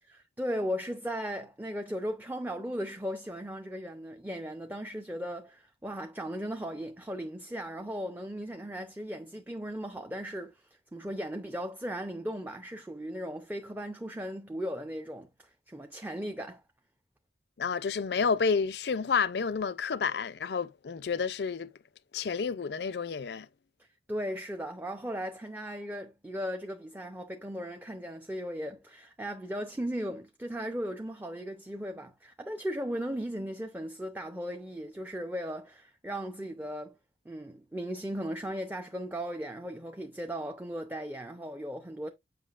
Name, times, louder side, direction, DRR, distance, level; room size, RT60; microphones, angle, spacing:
voice 1, 0.0-16.6 24.1-37.0 37.3-42.1, equal, 10° right, 0.6 m, -37 dB
voice 2, 17.6-21.7 22.1-23.5, left 5 dB, 70° left, 0.5 m, -30 dB
7.6 x 5.7 x 2.4 m
head